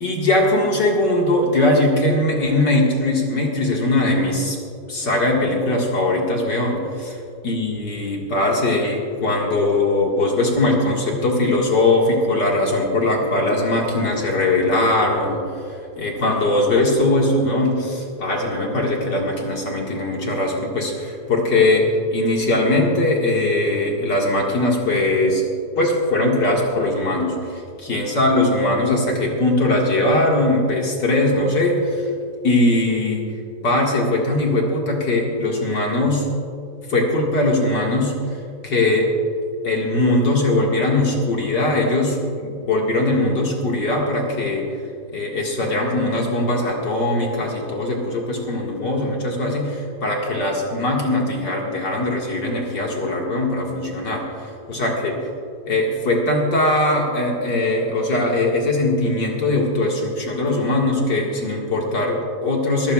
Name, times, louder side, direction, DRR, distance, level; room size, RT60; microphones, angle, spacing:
voice 1, 0.0-4.6 4.9-7.2 7.4-15.4 16.0-25.5 25.8-32.1 32.4-33.2 33.6-36.3 36.9-38.2 38.6-39.1 39.6-44.6 45.1-55.1 55.7-62.9, left 2 dB, 40° left, -1 dB, 1.7 m, -20 dB
22.0 x 16.0 x 2.4 m, 2.4 s
omnidirectional pair, 3.9 m